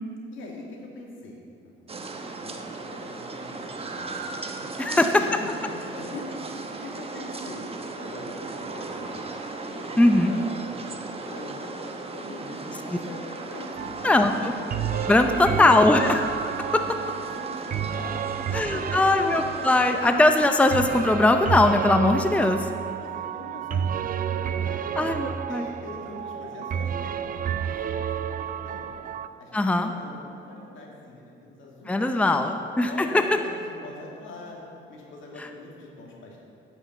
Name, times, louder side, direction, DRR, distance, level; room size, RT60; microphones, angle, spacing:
voice 1, 0.3-1.7 2.4-2.6 2.9-5.4 5.7-7.7 8.0-9.2 9.7-11.8 12.1-14.3 14.9-15.8 16.5-18.2 18.5-19.0 23.0-25.2 25.5-28.9 29.4-32.4 32.9-34.6 34.9-36.4, left 2 dB, 80° left, -2 dB, 2.4 m, -42 dB
sound 1, 1.9-20.3, right 3 dB, 30° right, 1.0 m, -37 dB
voice 2, 4.8-5.4 10.0-10.3 14.0-14.3 15.1-16.5 18.5-22.7 25.0-25.7 29.5-29.9 31.9-33.2 35.4-35.5, left 2 dB, 5° left, 6 dB, 0.6 m, -20 dB
sound 2, 13.8-29.3, right 8 dB, 45° right, 0.5 m, -31 dB
9.7 x 6.3 x 8.1 m, 2.5 s
cardioid pair, 90°, 20 cm